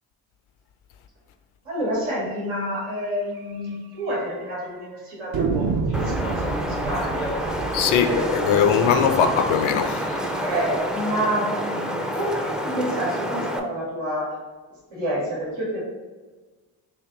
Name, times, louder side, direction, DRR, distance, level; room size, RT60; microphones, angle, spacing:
voice 1, 1.6-7.5 7.9-8.6 10.4-14.3 14.9-15.8, equal, 90° right, 1.2 m, -28 dB
sound 1, 2.5-2.7 3.0-3.1 3.4-3.5 4.1-4.6 5.3-10.1, right 4 dB, 50° right, 0.6 m, -30 dB
Wind, 5.9-13.6, equal, ahead, 0.3 m, -28 dB
voice 2, 7.7-10.1, left 7 dB, 75° left, 0.5 m, -20 dB
3.5 x 2.6 x 3.6 m
supercardioid pair, 40°, 49 cm